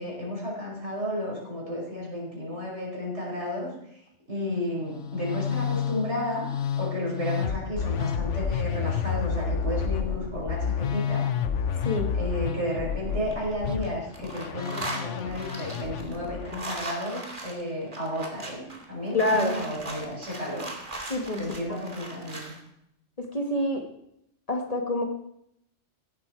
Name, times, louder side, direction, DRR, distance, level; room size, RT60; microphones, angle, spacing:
voice 1, 0.0-3.7 4.3-6.5 6.8-11.3 11.7-11.8 12.1-20.7 21.4-22.6, equal, 70° right, -3 dB, 5.8 m, -32 dB
Musical instrument, 4.8-16.6, left 7 dB, 90° left, 1.2 m, -30 dB
sound 1, 13.1-13.9 14.1-22.6, right 2 dB, 45° right, 2.5 m, -39 dB
voice 2, 19.1-19.6 21.1-21.4 21.7-21.8 23.2-23.8 24.5-25.0, left 1 dB, 30° left, 3 dB, 1.7 m, -26 dB
16.0 x 12.0 x 4.6 m, 0.77 s
omnidirectional pair, 1.2 m